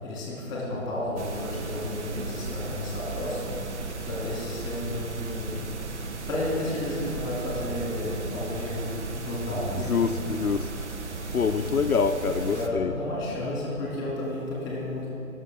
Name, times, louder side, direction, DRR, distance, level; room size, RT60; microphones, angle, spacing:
voice 1, 0.0-3.5 4.1-5.6 6.3-10.3 12.2-15.1, left 1 dB, 10° left, -5 dB, 2.7 m, -32 dB
sound 1, 1.2-12.7, right 3 dB, 55° right, 1.1 m, -36 dB
voice 2, 9.9-10.7 11.3-12.9, left 5 dB, 80° left, 8 dB, 0.6 m, -25 dB
21.0 x 7.2 x 3.8 m, 2.6 s
figure-of-eight pair, 135°, 43 cm